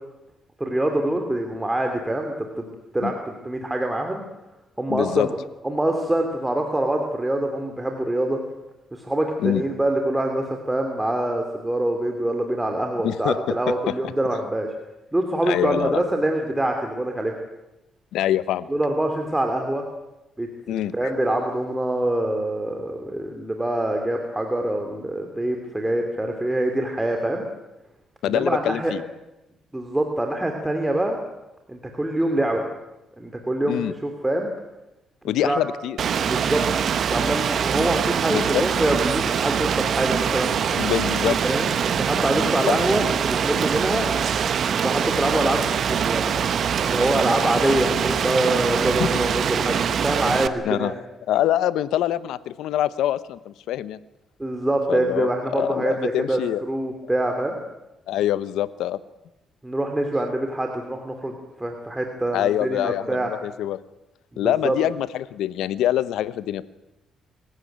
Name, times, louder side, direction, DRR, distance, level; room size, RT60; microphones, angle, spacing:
voice 1, 0.6-2.7 2.9-4.2 4.8-5.3 5.6-8.4 8.9-14.7 15.1-17.3 18.7-19.8 20.4-27.4 28.2-28.9 29.7-31.2 31.7-32.6 33.2-34.5 35.4-35.6 36.3-40.5 41.2-44.1 44.5-45.6 45.9-46.3 46.9-51.0 54.4-56.4 56.7-57.6 59.6-63.3 64.3-64.8, right 1 dB, 10° right, 4 dB, 3.0 m, -25 dB
voice 2, 4.9-5.3 9.4-9.6 13.0-13.9 15.5-16.0 18.1-18.7 20.7-20.9 28.2-29.0 33.7-33.9 35.2-36.0 37.8-37.9 38.3-38.6 40.8-41.4 42.3-42.8 50.6-50.9 51.3-54.0 54.9-56.6 58.1-59.0 62.3-63.8 64.4-66.6, left 12 dB, 85° left, 16 dB, 1.0 m, -25 dB
Rain, 36.0-50.5, right 7 dB, 60° right, 1.2 m, -23 dB
25.0 x 15.0 x 9.4 m, 0.94 s
cardioid pair, 90°, 0 cm